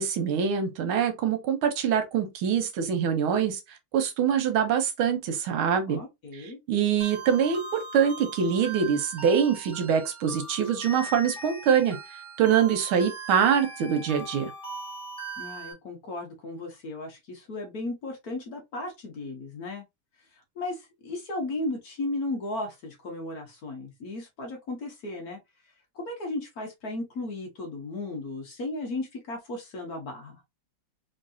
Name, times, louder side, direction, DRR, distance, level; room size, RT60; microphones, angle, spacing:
voice 1, 0.0-3.6 3.9-6.0 6.7-12.0 12.4-14.5, right 7 dB, 85° right, 1.7 m, -24 dB
voice 2, 5.9-6.6 15.4-19.8 20.5-25.4 25.9-30.4, left 2 dB, 55° left, 1.3 m, -35 dB
sound 1, 7.0-15.7, right 3 dB, 5° left, 1.2 m, -40 dB
3.6 x 3.2 x 2.7 m
omnidirectional pair, 2.3 m